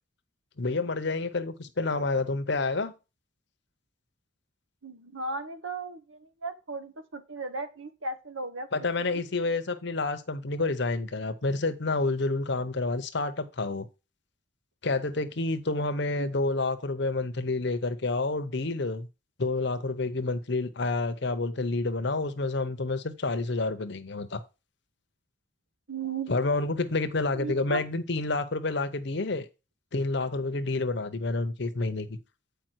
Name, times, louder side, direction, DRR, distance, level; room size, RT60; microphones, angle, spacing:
voice 1, 0.6-2.9 8.7-13.9 14.8-19.1 19.4-24.4 26.3-29.5 29.9-32.2, left 3 dB, 55° left, 0.8 m, -29 dB
voice 2, 4.8-9.1 16.2-16.3 25.9-26.3 27.3-27.8, right 3 dB, 70° right, 1.1 m, -36 dB
7.8 x 5.0 x 4.5 m
head